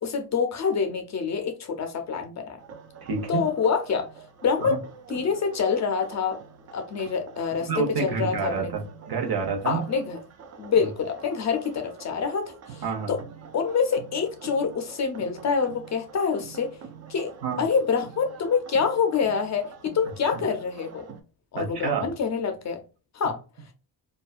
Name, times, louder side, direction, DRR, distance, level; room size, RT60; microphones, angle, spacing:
voice 1, 0.0-2.6 3.3-4.1 4.4-4.8 5.1-6.4 6.7-7.7 8.0-8.7 9.6-10.2 10.6-12.8 13.1-13.2 13.5-16.8 17.1-17.3 17.6-21.0 21.5-22.8 23.1-23.4, left 6 dB, 40° left, 0.5 m, -26 dB
sound 1, 2.6-21.2, right 6 dB, 40° right, 0.4 m, -45 dB
voice 2, 3.0-3.4 4.6-4.8 7.7-9.8 12.8-13.1 17.4-17.6 21.5-22.1, right 5 dB, 55° right, 0.9 m, -28 dB
2.4 x 2.2 x 2.3 m
cardioid pair, 105°, 44 cm